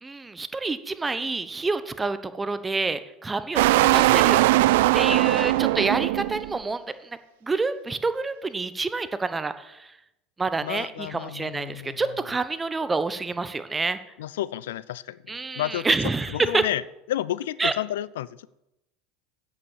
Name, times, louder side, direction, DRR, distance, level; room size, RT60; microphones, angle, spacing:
voice 1, 0.0-4.4 4.9-9.9 10.4-14.0 15.3-16.6 17.6-17.7, right 3 dB, 15° right, 11 dB, 0.9 m, -28 dB
sound 1, 3.6-6.6, right 17 dB, 75° right, 0.3 m, -20 dB
voice 2, 4.6-5.2 5.8-5.9 10.6-12.1 14.2-15.9 16.3-16.8 17.1-18.5, left 13 dB, 80° left, 20 dB, 0.4 m, -32 dB
8.4 x 8.4 x 7.2 m, 0.89 s
hypercardioid pair, 95°, 0 cm